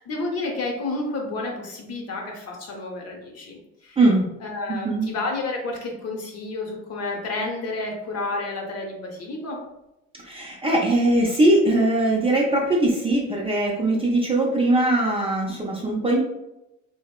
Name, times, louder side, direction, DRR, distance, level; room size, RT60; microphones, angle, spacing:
voice 1, 0.0-4.0 4.4-9.6, left 2 dB, 45° left, 0 dB, 0.8 m, -30 dB
voice 2, 4.0-4.3 4.7-5.1 10.2-16.2, right 1 dB, 15° right, -2 dB, 0.4 m, -21 dB
2.7 x 2.0 x 2.3 m, 0.90 s
hypercardioid pair, 80°, 35 cm